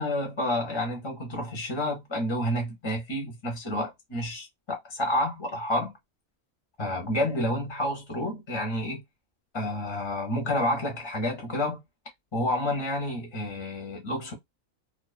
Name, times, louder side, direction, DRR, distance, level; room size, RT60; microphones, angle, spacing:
voice 1, 0.0-5.9 6.8-9.0 9.5-11.8 12.3-14.3, left 1 dB, 25° left, 0.6 m, -29 dB
2.4 x 2.2 x 2.4 m
omnidirectional pair, 1.4 m